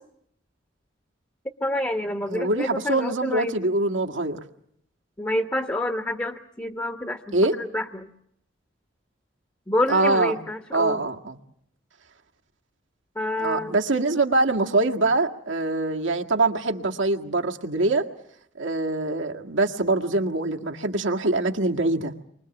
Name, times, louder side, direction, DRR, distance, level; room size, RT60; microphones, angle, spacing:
voice 1, 1.6-3.6 5.2-8.1 9.7-11.1 13.1-13.7, left 1 dB, 15° left, 5 dB, 1.1 m, -28 dB
voice 2, 2.3-4.4 7.3-7.5 9.9-10.4 10.7-11.4 13.4-18.1 18.6-22.1, right 2 dB, 85° right, 2 dB, 1.9 m, -24 dB
29.5 x 24.0 x 7.1 m, 0.74 s
head